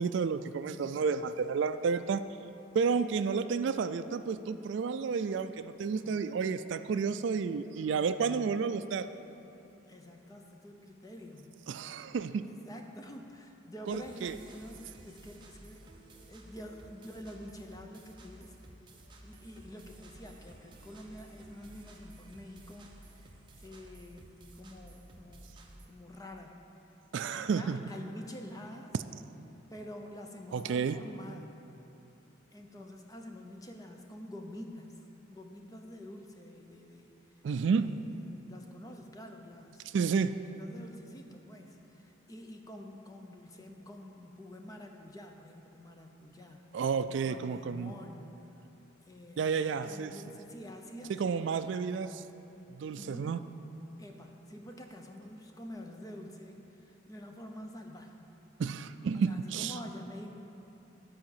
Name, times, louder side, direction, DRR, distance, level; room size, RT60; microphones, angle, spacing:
voice 1, 0.0-2.2 2.7-9.1 11.7-12.5 13.9-14.4 27.1-27.8 30.5-31.0 37.4-37.9 39.9-40.4 46.7-47.9 49.4-50.1 51.1-52.1 52.7-53.4 58.6-59.8, right 5 dB, 65° right, 12 dB, 0.3 m, -31 dB
voice 2, 6.0-6.5 9.9-11.5 12.5-15.8 16.1-18.6 19.2-25.6 25.9-26.6 27.3-28.9 29.7-31.6 32.5-37.4 37.7-39.9 40.4-46.6 47.1-48.4 49.1-51.9 53.0-53.4 54.0-58.2 59.1-60.3, left 1 dB, 15° left, 3 dB, 0.6 m, -48 dB
sound 1, 13.9-25.9, right 1 dB, 25° right, 0.8 m, -54 dB
12.0 x 4.9 x 7.3 m, 2.9 s
head